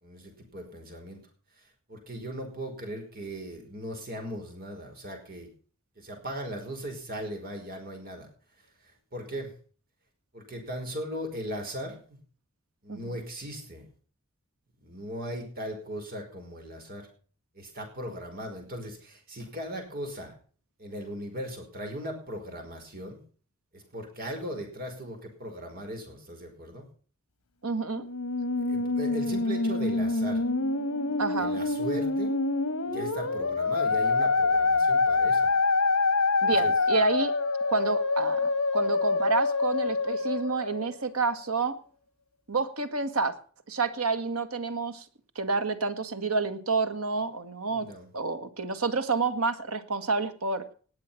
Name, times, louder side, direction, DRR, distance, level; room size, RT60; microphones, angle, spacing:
voice 1, 0.0-1.2 1.6-5.5 6.0-8.3 8.8-9.5 10.3-12.2 12.8-13.9 14.8-17.1 17.5-20.3 20.8-23.2 23.7-26.9 28.7-30.5 31.4-32.3 32.9-35.5 36.4-36.7 47.7-48.1, equal, 45° right, 3 dB, 5.2 m, -38 dB
voice 2, 27.6-28.1 31.2-31.6 36.4-37.3 37.7-41.8 42.5-43.4 43.7-45.1 45.4-47.9 48.1-50.7, right 4 dB, 80° right, 9 dB, 1.7 m, -29 dB
Musical instrument, 27.9-41.3, left 3 dB, 75° left, 1.5 m, -26 dB
19.5 x 7.6 x 5.8 m, 0.43 s
head